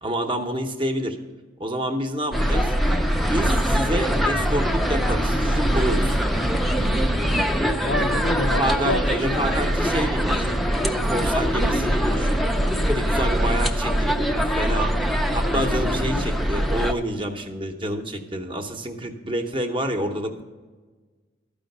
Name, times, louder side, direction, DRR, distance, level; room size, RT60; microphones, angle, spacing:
voice 1, 0.0-1.2 1.6-2.7 3.3-6.2 8.6-10.6 11.0-12.4 12.9-14.9 15.3-20.4, right 1 dB, 25° right, 6 dB, 0.8 m, -28 dB
sound 1, 2.3-16.9, equal, ahead, 0.5 m, -22 dB
voice 2, 7.8-9.4 15.5-16.4, left 2 dB, 80° left, 9 dB, 0.6 m, -29 dB
12.5 x 5.1 x 6.6 m, 1.3 s
head